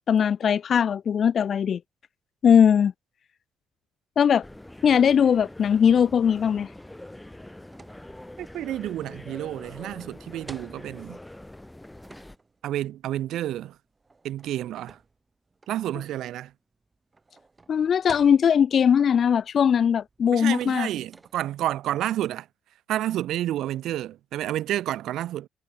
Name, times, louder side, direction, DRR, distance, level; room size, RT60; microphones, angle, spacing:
voice 1, 0.1-1.8 2.4-2.9 4.2-4.4 4.8-6.7 17.7-20.9, left 8 dB, 55° left, 1.0 m, -20 dB
sound 1, 4.4-12.4, left 1 dB, 10° left, 5.5 m, -44 dB
sound 2, 7.6-21.8, right 3 dB, 25° right, 5.2 m, -53 dB
voice 2, 8.4-11.2 12.6-13.8 14.2-15.0 15.7-16.5 20.3-22.5 22.9-25.5, right 13 dB, 80° right, 1.4 m, -30 dB
cardioid pair, 90°, 0 cm